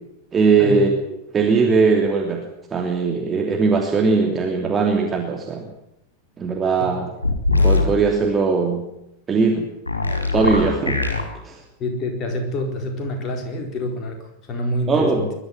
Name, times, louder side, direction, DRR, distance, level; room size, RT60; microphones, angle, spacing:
voice 1, 0.3-0.9 1.3-2.4 2.7-5.7 6.4-7.1 7.6-8.9 9.3-9.7 10.3-11.0 11.4-11.6 14.9-15.2, right 4 dB, 20° right, 1 dB, 3.0 m, -19 dB
voice 2, 6.8-7.1 11.8-15.3, left 1 dB, 30° left, 3 dB, 4.4 m, -27 dB
sound 1, 7.2-7.9 9.9-11.2, left 3 dB, 80° left, 4.6 m, -20 dB
21.0 x 13.0 x 9.8 m, 0.83 s
figure-of-eight pair, 90°, 0 cm